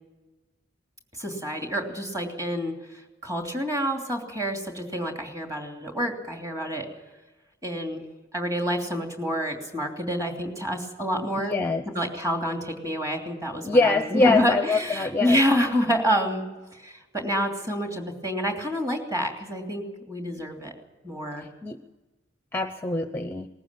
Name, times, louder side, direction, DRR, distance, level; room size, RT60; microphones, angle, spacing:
voice 1, 1.2-2.7 3.2-6.9 7.6-8.0 8.3-11.6 11.9-16.5 16.8-20.7 21.0-21.5, equal, 15° right, 3 dB, 3.0 m, -28 dB
voice 2, 11.4-11.8 13.6-15.4 21.4-21.8 22.5-23.5, left 3 dB, 10° left, 8 dB, 0.7 m, -24 dB
20.0 x 15.0 x 9.1 m, 1.1 s
head